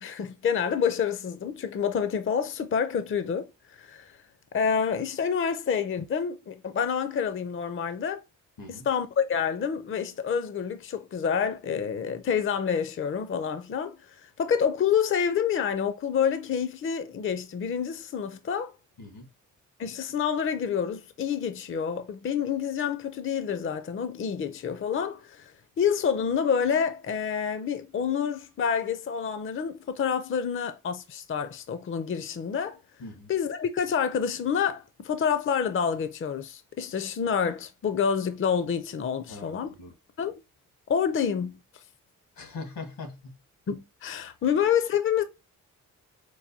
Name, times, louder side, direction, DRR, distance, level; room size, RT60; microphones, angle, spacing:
voice 1, 0.0-4.1 4.5-8.2 8.9-14.0 14.4-18.7 19.8-25.5 25.8-32.8 33.3-39.7 40.2-40.4 40.9-41.5 43.7-45.2, left 7 dB, 40° left, 0.5 m, -28 dB
voice 2, 33.0-33.3 39.3-39.9 42.3-43.4, left 3 dB, 85° left, 1.5 m, -41 dB
4.6 x 2.2 x 2.8 m
cardioid pair, 55°, 33 cm